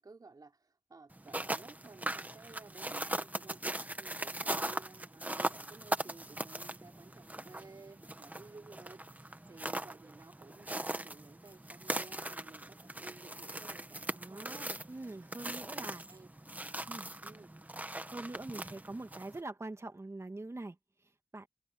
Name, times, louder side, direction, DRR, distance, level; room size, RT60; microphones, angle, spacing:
voice 1, 0.0-3.6 4.0-14.8 15.8-16.8 17.2-17.5, right 3 dB, 70° right, 3.4 m, -55 dB
sound 1, 1.1-19.4, right 1 dB, 25° right, 1.6 m, -40 dB
voice 2, 13.9-16.0 16.9-17.1 18.1-20.8 21.3-21.5, right 2 dB, 45° right, 2.5 m, -44 dB
wide cardioid pair, 55°, 7 cm